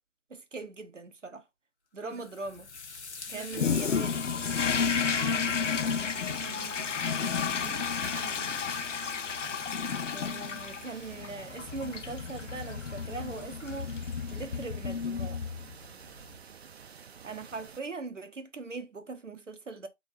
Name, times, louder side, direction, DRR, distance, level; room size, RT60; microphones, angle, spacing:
voice 1, 0.3-1.4 1.9-2.7 3.3-4.3 10.1-13.9 14.3-15.4 17.2-19.9, right 3 dB, 85° right, 1.0 m, -40 dB
sound 1, 2.1-6.9, left 4 dB, 65° left, 1.1 m, -47 dB
voice 2, 3.3-3.8 5.0-6.9 7.5-8.5, right 5 dB, 15° right, 0.5 m, -46 dB
Toilet flush, 3.5-15.9, left 6 dB, 90° left, 0.5 m, -32 dB
sound 2, 4.4-17.8, right 7 dB, 60° right, 0.6 m, -50 dB
3.9 x 3.3 x 3.0 m
figure-of-eight pair, 135°, 36 cm